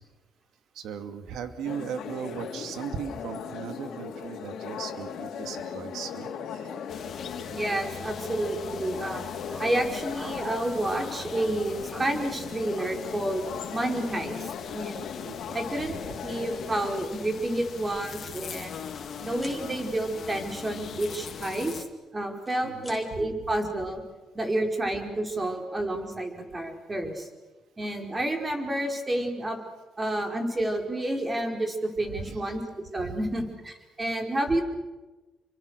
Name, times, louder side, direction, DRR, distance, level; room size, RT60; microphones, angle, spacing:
voice 1, 0.7-6.7 15.3-15.6 15.9-16.2 22.6-23.3 32.1-32.4 33.0-33.2, right 7 dB, 80° right, 8 dB, 2.4 m, -38 dB
sound 1, 1.6-17.1, left 7 dB, 75° left, 3.2 m, -38 dB
sound 2, 6.9-21.8, left 7 dB, 60° left, 2.4 m, -42 dB
voice 2, 7.5-15.0 15.5-15.9 16.2-18.8 19.2-21.8 22.1-24.0 24.3-27.3 27.8-29.6 30.0-32.6 32.9-34.6, right 1 dB, 20° right, 3 dB, 5.1 m, -30 dB
sound 3, 18.9-19.1 19.3-19.6 21.2-22.0 22.3-23.0, left 2 dB, 5° left, 6.6 m, -49 dB
28.5 x 24.5 x 6.7 m, 1.2 s
cardioid pair, 90°, 0 cm